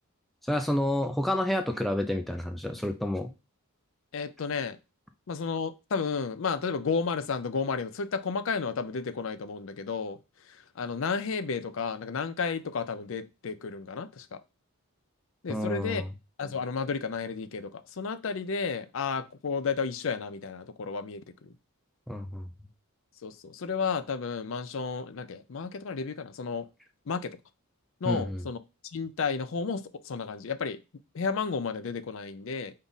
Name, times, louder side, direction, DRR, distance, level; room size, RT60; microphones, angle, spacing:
voice 1, 0.5-3.3 15.5-16.0 22.1-22.5 28.0-28.4, left 1 dB, ahead, 0.4 m, -29 dB
voice 2, 4.1-4.8 5.3-10.2 10.5-14.4 15.4-16.0 16.4-21.5 23.2-26.7 27.1-27.4 28.0-28.6 28.9-30.8 31.1-32.7, left 5 dB, 60° left, 0.5 m, -32 dB
5.3 x 2.4 x 4.0 m
head